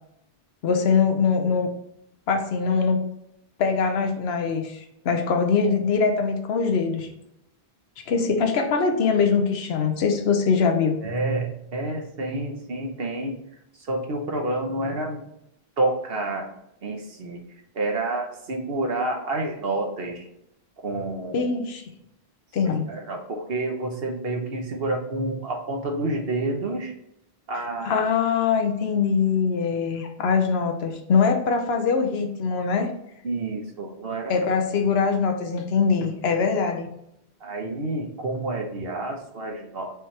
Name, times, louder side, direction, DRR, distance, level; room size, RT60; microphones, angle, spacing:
voice 1, 0.6-1.7 2.3-3.0 3.6-7.1 8.1-11.0 21.3-21.8 22.5-22.9 27.8-32.9 34.3-36.9, left 5 dB, 80° left, 5 dB, 0.9 m, -22 dB
voice 2, 11.0-13.3 13.8-15.2 15.8-16.5 16.8-17.4 17.7-20.3 20.8-21.5 22.9-26.9 27.5-28.1 33.2-34.3 37.4-39.9, right 2 dB, 70° right, 2 dB, 1.2 m, -29 dB
5.4 x 2.9 x 3.2 m, 0.78 s
omnidirectional pair, 1.0 m